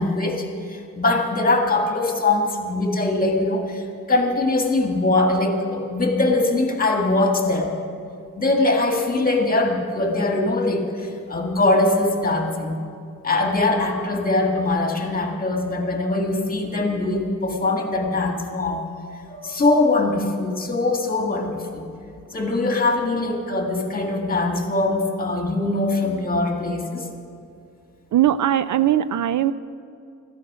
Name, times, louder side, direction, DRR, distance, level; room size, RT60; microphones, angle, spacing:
voice 1, 0.0-7.9 8.4-12.8 13.2-18.9 19.3-21.9 22.3-27.1, left 2 dB, 25° left, 2 dB, 1.8 m, -22 dB
voice 2, 28.1-29.5, right 11 dB, 70° right, 15 dB, 0.5 m, -19 dB
15.0 x 13.5 x 5.0 m, 2.4 s
wide cardioid pair, 135°, 32 cm